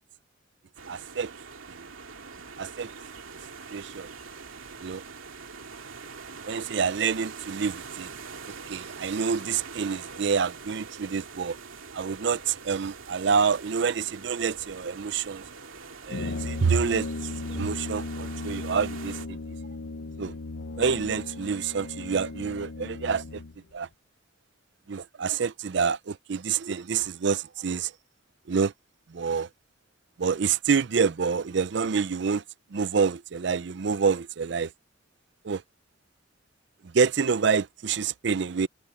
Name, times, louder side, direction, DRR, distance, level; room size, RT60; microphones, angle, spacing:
sound 1, 0.8-19.3, right 5 dB, 90° right, 2.5 m, -44 dB
voice 1, 0.9-1.3 1.8-1.9 2.6-2.9 3.7-4.1 4.8-5.0 6.5-8.1 8.7-11.6 11.9-15.5 16.1-17.1 17.4-19.4 20.2-20.3 20.8-23.4 23.7-23.9 24.9-27.9 28.5-28.7 29.1-29.5 30.2-32.4 32.7-34.7 35.4-35.6 36.8-38.7, right 6 dB, 60° right, 0.5 m, -27 dB
Brass instrument, 16.1-23.6, left 3 dB, 85° left, 0.7 m, -36 dB
head